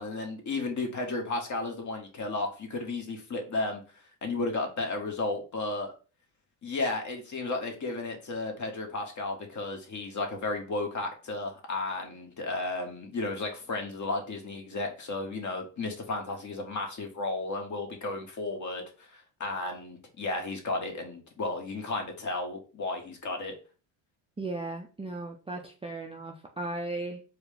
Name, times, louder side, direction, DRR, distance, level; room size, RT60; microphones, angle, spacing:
voice 1, 0.0-3.8 4.2-5.9 6.6-18.8 19.1-23.5, left 2 dB, 35° left, 3 dB, 1.3 m, -33 dB
voice 2, 24.4-27.2, right 2 dB, 10° right, 0 dB, 0.5 m, -36 dB
4.4 x 2.2 x 3.4 m, 0.35 s
supercardioid pair, 85°, 48 cm